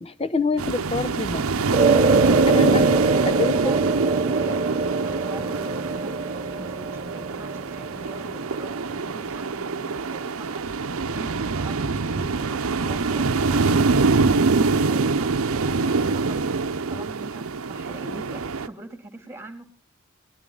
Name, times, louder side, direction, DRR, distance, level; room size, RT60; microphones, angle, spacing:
voice 1, 0.0-1.4 2.5-2.9 3.2-3.7, left 4 dB, 30° left, 0.9 m, -26 dB
sound 1, 0.6-18.7, right 4 dB, 80° right, 0.8 m, -24 dB
sound 2, 1.7-10.2, right 4 dB, 30° right, 0.9 m, -25 dB
voice 2, 2.7-4.7 5.0-14.2 14.6-16.4 16.9-19.7, right 1 dB, 10° right, 2.6 m, -42 dB
20.0 x 12.5 x 3.9 m
head